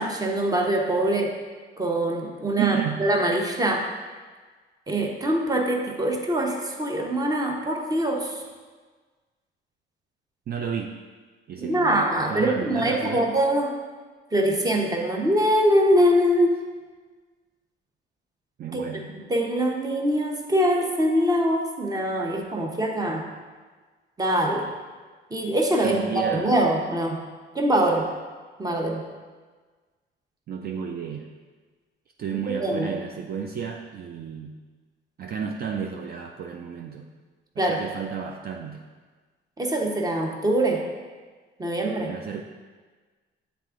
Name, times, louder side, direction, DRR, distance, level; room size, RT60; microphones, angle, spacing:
voice 1, 0.0-1.3 1.8-3.9 4.9-8.4 11.6-13.8 14.3-16.6 18.7-18.8 19.3-23.2 24.2-24.7 25.3-27.2 27.5-28.1 28.6-29.0 32.6-32.9 37.6-37.8 39.6-40.8 41.6-42.1, right 1 dB, 20° right, 1 dB, 0.9 m, -23 dB
voice 2, 2.6-3.0 10.5-10.9 11.5-13.2 18.6-19.1 25.8-26.5 30.5-31.3 32.2-34.5 35.2-37.1 37.6-38.8 42.1-42.4, right 7 dB, 50° right, 2 dB, 0.4 m, -32 dB
7.4 x 3.5 x 3.7 m, 1.4 s
cardioid pair, 90°, 20 cm